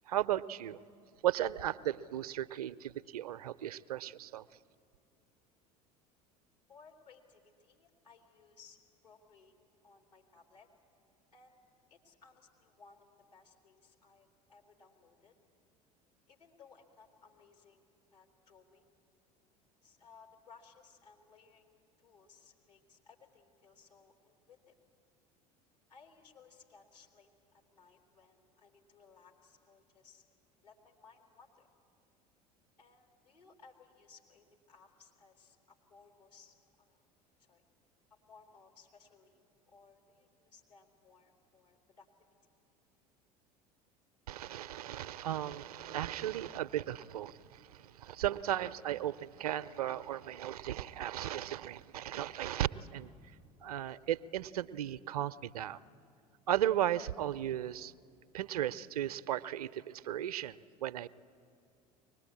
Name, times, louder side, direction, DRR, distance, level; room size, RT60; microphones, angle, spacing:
voice 1, 0.1-0.8 1.2-4.4 44.3-53.1 53.6-55.8 56.5-57.9 58.3-61.1, right 12 dB, 70° right, 16 dB, 0.5 m, -35 dB
voice 2, 6.7-8.8 9.0-9.5 9.8-10.7 11.3-11.6 11.9-13.0 13.3-15.3 16.3-18.9 19.8-24.7 25.9-30.2 30.6-31.7 32.8-37.1 37.5-37.6 38.1-39.4 39.7-42.1, left 5 dB, 80° left, -1 dB, 3.1 m, -61 dB
24.0 x 19.5 x 8.5 m, 2.4 s
figure-of-eight pair, 70°, 20 cm